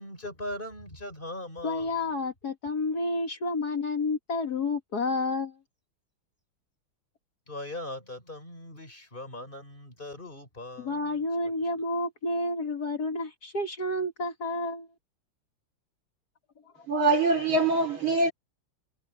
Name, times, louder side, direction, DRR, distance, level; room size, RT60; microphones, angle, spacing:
voice 1, 0.0-1.8 7.5-10.9, left 1 dB, 25° left, 4.5 m, -39 dB
voice 2, 1.6-5.5 10.8-14.9 16.6-16.7, left 2 dB, 50° left, 2.3 m, -30 dB
voice 3, 16.9-18.3, right 3 dB, 70° right, 4.4 m, -23 dB
omnidirectional pair, 2.3 m